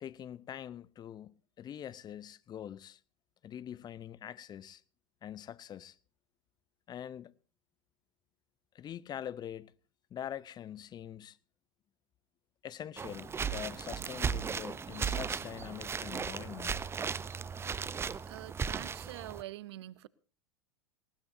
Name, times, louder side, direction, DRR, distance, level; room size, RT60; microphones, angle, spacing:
voice 1, 0.0-3.0 3.4-4.8 5.2-6.0 6.9-7.3 8.7-9.7 10.1-11.4 12.6-16.8, left 10 dB, 25° left, 0.6 m, -44 dB
sound 1, 13.0-19.4, right 6 dB, 15° right, 0.6 m, -36 dB
voice 2, 18.3-20.1, right 15 dB, 65° right, 0.6 m, -45 dB
19.5 x 18.5 x 2.7 m
figure-of-eight pair, 90°, 15 cm